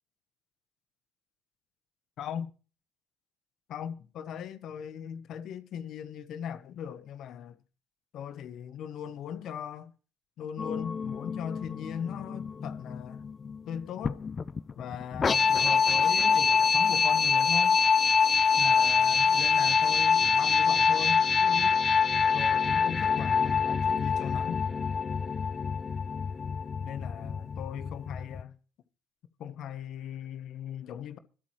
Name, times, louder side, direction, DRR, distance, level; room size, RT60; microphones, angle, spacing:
voice 1, 2.2-2.5 3.7-7.5 8.1-9.9 10.4-13.2 13.7-14.2 14.8-17.8 18.6-21.8 22.3-24.6 26.8-28.5 29.4-31.2, left 9 dB, 60° left, 1.3 m, -39 dB
sound 1, 10.6-28.4, left 6 dB, 40° left, 0.7 m, -25 dB
24.5 x 8.5 x 3.2 m
hypercardioid pair, 50°, 0 cm